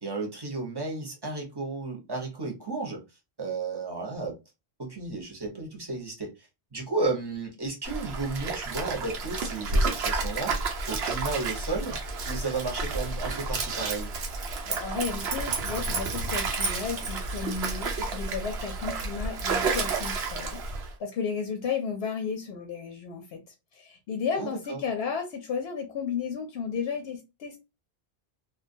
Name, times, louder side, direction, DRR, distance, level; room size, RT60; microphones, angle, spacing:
voice 1, 0.0-3.0 3.4-4.4 4.8-10.6 10.9-12.0 12.2-14.1 24.4-24.8, right 3 dB, 25° right, 0.7 m, -33 dB
Stream, 7.8-20.9, right 3 dB, 90° right, 0.9 m, -30 dB
voice 2, 14.7-20.6 21.0-23.4 23.7-27.6, left 6 dB, 85° left, 0.8 m, -33 dB
2.3 x 2.2 x 2.5 m
omnidirectional pair, 1.0 m